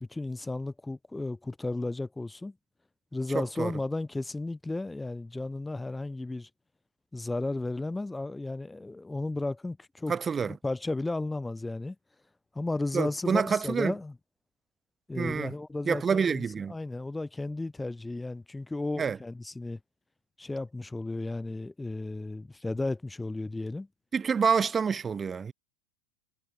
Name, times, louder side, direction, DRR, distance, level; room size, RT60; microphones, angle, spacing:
voice 1, 0.0-2.5 3.1-6.5 7.1-10.1 10.5-12.0 12.5-14.1 15.1-19.8 20.4-23.9, left 2 dB, 10° left, 0.7 m, -34 dB
voice 2, 3.3-3.7 10.1-10.6 12.9-13.9 15.2-15.5 15.9-16.7 19.0-19.2 24.1-25.5, right 6 dB, 20° right, 0.4 m, -27 dB
figure-of-eight pair, 80°, 0 cm